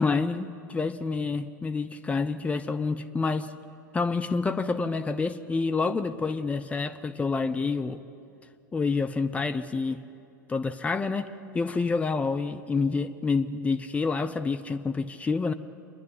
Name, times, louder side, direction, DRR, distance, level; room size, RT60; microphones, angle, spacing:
voice 1, 0.0-3.5 3.9-8.0 8.7-10.0 10.5-15.5, left 4 dB, 15° left, 8 dB, 0.6 m, -28 dB
26.5 x 10.5 x 10.0 m, 2.5 s
figure-of-eight pair, 90°, 10 cm